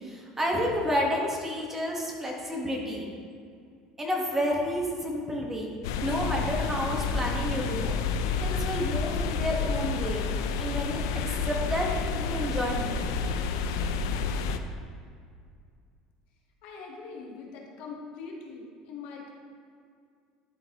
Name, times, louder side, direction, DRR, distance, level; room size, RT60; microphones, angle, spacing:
voice 1, 0.0-3.1 4.0-5.7 6.0-8.0 8.4-10.2 10.6-11.0 11.4-11.9 12.2-13.1, equal, 15° right, -1 dB, 1.3 m, -30 dB
sound 1, 5.8-14.6, left 5 dB, 90° left, 0.4 m, -29 dB
voice 2, 16.6-19.3, left 4 dB, 70° left, 0 dB, 1.2 m, -42 dB
11.5 x 3.9 x 2.9 m, 2.2 s
supercardioid pair, 105°, 2 cm